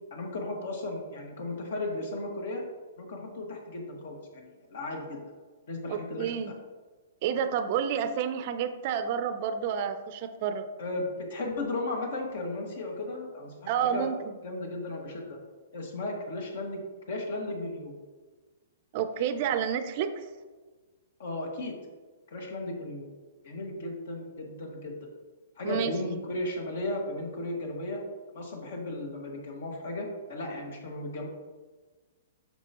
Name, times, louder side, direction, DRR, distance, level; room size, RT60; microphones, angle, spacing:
voice 1, 0.1-2.6 3.0-5.2 5.7-6.3 10.8-14.1 14.4-15.4 15.7-16.8 17.1-17.9 21.2-21.7 22.3-23.1 23.4-24.9 25.6-28.0 28.3-31.3, left 2 dB, 60° left, 1 dB, 1.9 m, -35 dB
voice 2, 5.9-6.5 7.2-10.7 13.7-14.2 18.9-20.2 25.6-26.0, right 8 dB, 35° right, 9 dB, 0.5 m, -29 dB
9.1 x 6.4 x 3.0 m, 1.3 s
hypercardioid pair, 165°, 0 cm